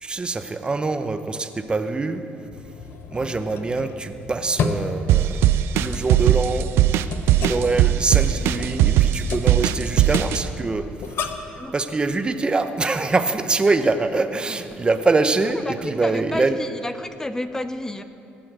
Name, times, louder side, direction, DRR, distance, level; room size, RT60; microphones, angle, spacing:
voice 1, 0.0-2.2 3.1-5.4 5.7-6.7 7.4-10.8 11.7-16.6, right 3 dB, 20° right, 9 dB, 0.8 m, -24 dB
sound 1, 2.5-11.6, left 5 dB, 65° left, 0.9 m, -33 dB
sound 2, 5.1-10.4, right 12 dB, 80° right, 0.4 m, -18 dB
voice 2, 15.6-18.0, left 1 dB, 15° left, 10 dB, 0.7 m, -30 dB
17.0 x 5.8 x 8.0 m, 2.7 s
cardioid pair, 90°, 4 cm